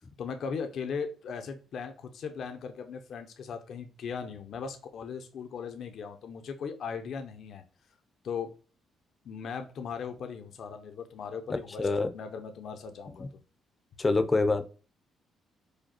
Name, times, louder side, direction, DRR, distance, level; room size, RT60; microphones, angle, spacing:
voice 1, 0.2-7.6 8.2-8.5 9.2-13.3, left 6 dB, 65° left, 6 dB, 0.8 m, -38 dB
voice 2, 11.8-12.1 13.2-13.3 14.0-14.7, left 3 dB, 25° left, 9 dB, 0.7 m, -25 dB
5.0 x 2.3 x 4.3 m, 0.36 s
cardioid pair, 90°, 0 cm